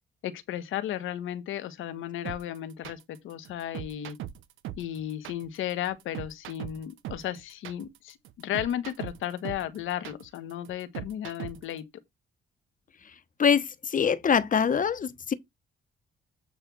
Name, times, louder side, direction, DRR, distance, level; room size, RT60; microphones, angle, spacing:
voice 1, 0.2-4.2 4.8-11.8, left 11 dB, 85° left, 1.4 m, -34 dB
sound 1, 2.2-11.8, right 12 dB, 90° right, 0.8 m, -40 dB
voice 2, 13.4-15.3, left 7 dB, 40° left, 1.1 m, -24 dB
8.8 x 3.4 x 6.1 m
cardioid pair, 90°, 20 cm